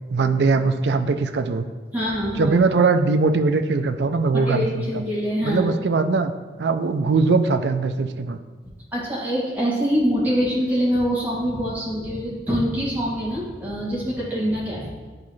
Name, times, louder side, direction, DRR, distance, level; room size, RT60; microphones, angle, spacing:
voice 1, 0.1-1.7 2.4-5.0 5.4-6.3 6.6-8.4, right 4 dB, 70° right, 8 dB, 0.4 m, -21 dB
voice 2, 1.9-2.5 4.3-5.7 8.9-14.9, equal, 10° right, -7 dB, 1.9 m, -24 dB
11.0 x 4.1 x 3.2 m, 1.4 s
head